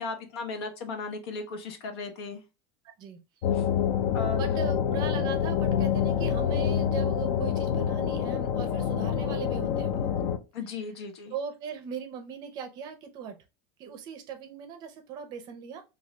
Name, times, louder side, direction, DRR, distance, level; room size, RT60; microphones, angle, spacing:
voice 1, 0.0-2.4 3.5-3.7 4.1-4.4 10.5-11.3, left 4 dB, 75° left, 6 dB, 1.0 m, -36 dB
voice 2, 3.0-3.5 4.4-10.1 11.3-13.4 13.8-15.8, right 7 dB, 30° right, 7 dB, 0.5 m, -39 dB
sound 1, 3.4-10.4, left 8 dB, 50° left, 0.5 m, -27 dB
3.0 x 2.7 x 3.2 m, 0.27 s
supercardioid pair, 170°, 13 cm